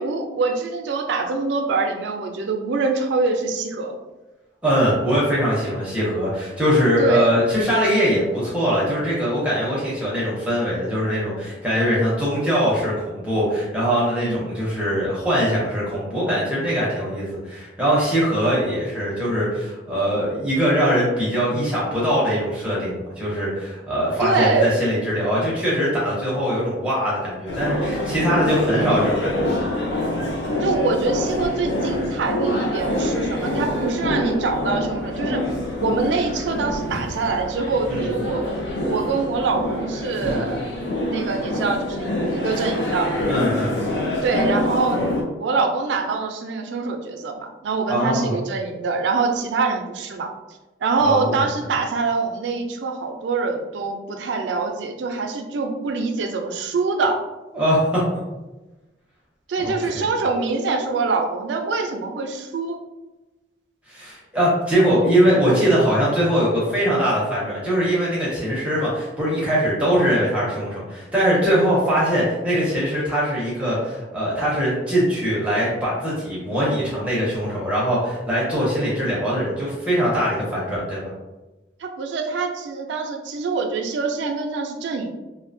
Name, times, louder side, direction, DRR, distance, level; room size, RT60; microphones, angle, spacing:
voice 1, 0.0-4.0 7.0-7.3 14.2-14.3 24.2-24.7 30.6-35.4 35.8-40.7 41.1-43.1 44.2-45.0 45.4-50.3 50.8-57.2 59.5-62.8 81.8-85.1, right 4 dB, 85° right, 4 dB, 0.4 m, -24 dB
voice 2, 4.6-29.6 37.9-38.1 40.2-40.4 43.3-43.7 47.9-48.3 51.0-51.4 57.5-58.0 59.6-60.0 63.9-81.1, equal, 5° right, -7 dB, 0.5 m, -22 dB
sound 1, 27.5-45.2, left 1 dB, 75° left, 0.5 m, -25 dB
2.7 x 2.1 x 2.5 m, 1.1 s
head